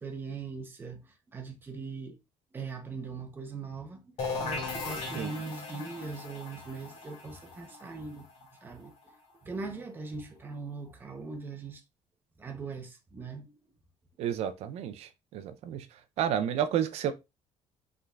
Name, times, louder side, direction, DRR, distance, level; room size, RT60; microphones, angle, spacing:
voice 1, 0.0-2.2 2.5-8.3 8.6-8.9 9.4-11.8 12.4-13.6, right 4 dB, 20° right, 0.8 m, -40 dB
sound 1, 4.2-9.8, left 3 dB, 60° left, 2.1 m, -38 dB
voice 2, 14.2-15.9 16.2-17.1, right 9 dB, 65° right, 0.6 m, -31 dB
5.5 x 3.7 x 2.4 m
cardioid pair, 170°, 12 cm